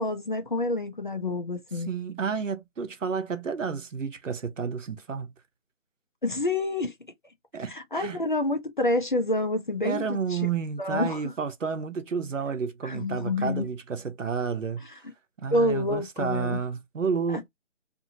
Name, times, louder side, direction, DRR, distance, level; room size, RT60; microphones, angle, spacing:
voice 1, 0.0-1.9 6.2-6.9 7.7-10.4 10.8-11.3 12.8-13.7 15.5-16.6 17.3-17.4, left 2 dB, 40° left, 0.5 m, -28 dB
voice 2, 1.9-5.3 7.5-8.2 9.8-14.8 15.4-17.5, right 6 dB, 75° right, 0.9 m, -31 dB
2.7 x 2.6 x 2.7 m
figure-of-eight pair, 165°, 39 cm